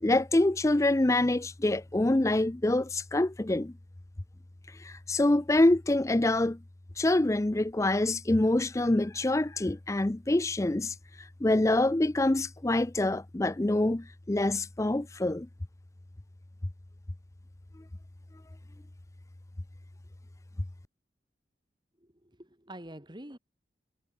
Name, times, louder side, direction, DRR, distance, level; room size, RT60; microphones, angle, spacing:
voice 1, 0.0-3.7 4.7-6.6 7.0-15.5, left 2 dB, 15° left, 0.5 m, -26 dB
voice 2, 22.2-23.4, right 1 dB, 25° right, 3.7 m, -46 dB
head